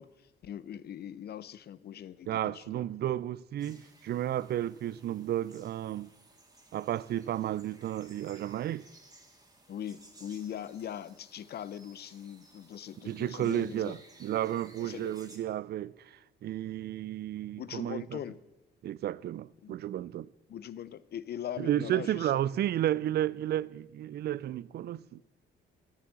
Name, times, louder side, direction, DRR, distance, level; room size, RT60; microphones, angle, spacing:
voice 1, 0.0-2.9 9.7-14.0 14.8-15.1 17.6-18.4 19.6-19.8 20.5-22.4, left 10 dB, 55° left, 0.6 m, -41 dB
voice 2, 2.3-6.1 6.7-8.9 13.0-18.2 18.8-20.3 21.6-25.2, right 12 dB, 55° right, 0.4 m, -32 dB
sound 1, 3.6-15.4, right 2 dB, 20° right, 2.0 m, -58 dB
9.6 x 6.9 x 7.5 m
cardioid pair, 90°, 20 cm